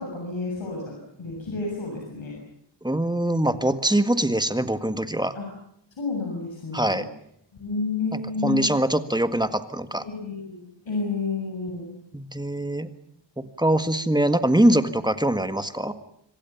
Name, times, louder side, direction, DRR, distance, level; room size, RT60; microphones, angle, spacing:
voice 1, 0.0-2.3 5.3-5.5 6.0-7.0 7.6-8.6 10.0-11.9, left 4 dB, 85° left, 0 dB, 7.8 m, -30 dB
voice 2, 2.8-5.3 6.7-7.1 8.1-10.0 12.1-12.9 13.4-15.9, right 1 dB, 10° right, 10 dB, 1.8 m, -23 dB
26.5 x 25.0 x 7.2 m, 0.73 s
wide cardioid pair, 100°, 45 cm